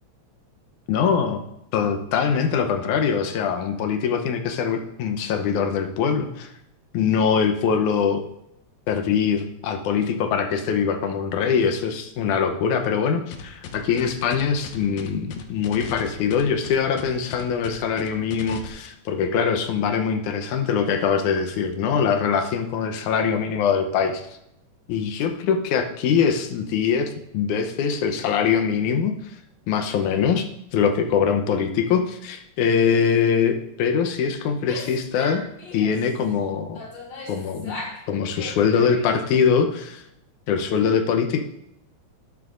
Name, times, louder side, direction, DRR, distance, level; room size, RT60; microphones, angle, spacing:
voice 1, 0.9-1.4 1.7-6.5 6.9-8.2 8.9-24.2 24.9-29.2 29.7-30.5 30.7-35.4 35.7-36.8 37.3-37.7 38.1-40.0 40.5-41.4, left 6 dB, 90° left, 6 dB, 2.3 m, -23 dB
sound 1, 13.3-18.7, left 7 dB, 75° left, 2.1 m, -37 dB
Female speech woman speaking / Yell, 34.5-36.1 36.7-38.0 38.3-39.3, left 2 dB, 60° left, 3.2 m, -37 dB
12.0 x 11.5 x 2.5 m, 0.81 s
omnidirectional pair, 3.4 m